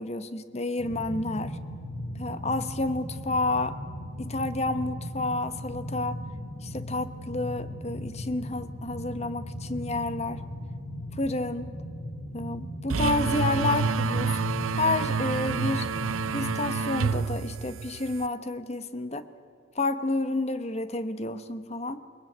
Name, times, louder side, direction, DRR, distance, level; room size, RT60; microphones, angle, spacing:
voice 1, 0.0-1.6 2.1-3.8 4.2-6.2 6.6-10.4 11.1-11.7 12.3-14.4 14.7-15.9 16.3-19.2 19.7-22.0, left 2 dB, 30° left, 12 dB, 0.9 m, -30 dB
sound 1, 0.8-16.8, equal, 55° left, 4.0 m, -38 dB
sound 2, 12.9-18.3, right 5 dB, 85° right, 0.6 m, -28 dB
22.0 x 20.5 x 9.2 m, 2.3 s
head